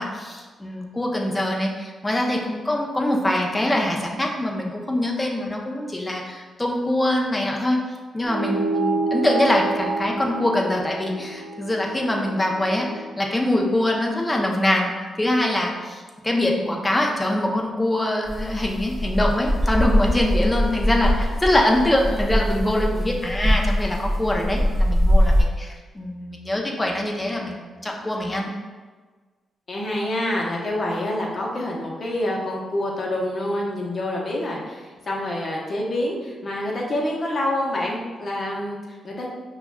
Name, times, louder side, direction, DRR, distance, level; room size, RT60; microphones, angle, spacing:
voice 1, 0.0-7.8 8.1-28.5, left 1 dB, 15° left, 0 dB, 0.6 m, -24 dB
sound 1, 8.2-13.1, right 3 dB, 55° right, 0.8 m, -28 dB
sound 2, 18.3-25.4, equal, 25° right, 1.2 m, -22 dB
voice 2, 29.7-39.3, left 1 dB, 45° left, -2 dB, 0.9 m, -27 dB
5.7 x 2.3 x 2.2 m, 1.4 s
cardioid pair, 80°, 0 cm